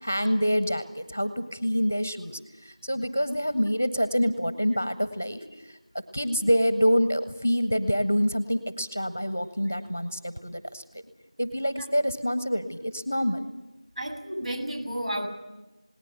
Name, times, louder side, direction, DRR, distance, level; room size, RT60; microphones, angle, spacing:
voice 1, 0.0-5.8 6.1-11.1 11.4-13.4, equal, 20° left, 14 dB, 0.7 m, -26 dB
voice 2, 14.0-15.3, right 1 dB, 90° right, 3 dB, 7.7 m, -32 dB
27.5 x 19.0 x 6.6 m, 1.1 s
figure-of-eight pair, 180°, 3 cm